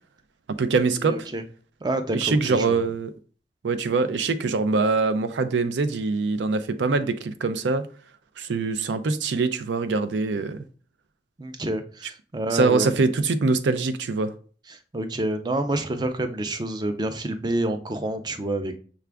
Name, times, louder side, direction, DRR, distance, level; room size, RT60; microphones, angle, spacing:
voice 1, 0.5-1.3 2.1-3.1 3.6-7.8 8.4-10.7 12.5-14.3, right 4 dB, 85° right, 0.4 m, -23 dB
voice 2, 1.0-1.4 1.8-2.8 11.4-12.9 14.7-18.8, right 1 dB, 25° right, 0.4 m, -28 dB
5.8 x 2.4 x 3.3 m
head